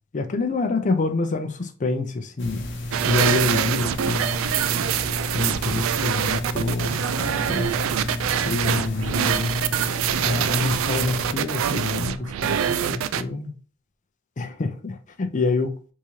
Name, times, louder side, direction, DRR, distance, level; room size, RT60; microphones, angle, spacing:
voice 1, 0.1-2.7 3.0-4.4 5.3-7.8 8.0-9.6 10.2-13.5 14.4-15.8, left 3 dB, 40° left, 0.5 m, -27 dB
sound 1, 2.4-11.3, left 1 dB, 65° left, 0.8 m, -32 dB
sound 2, 2.9-13.2, right 9 dB, 80° right, 0.3 m, -25 dB
3.6 x 3.1 x 2.7 m
head